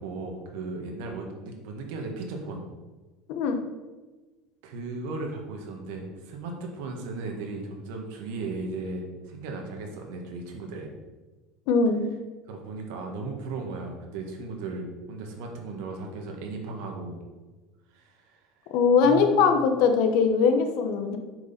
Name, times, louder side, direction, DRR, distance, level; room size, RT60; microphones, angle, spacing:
voice 1, 0.0-2.7 4.6-10.9 12.5-17.2 17.9-18.4 19.0-19.4, right 3 dB, 75° right, 2 dB, 1.8 m, -36 dB
voice 2, 11.7-12.1 18.7-21.2, left 5 dB, 60° left, 6 dB, 1.0 m, -21 dB
7.8 x 5.1 x 5.9 m, 1.2 s
cardioid pair, 165°, 0 cm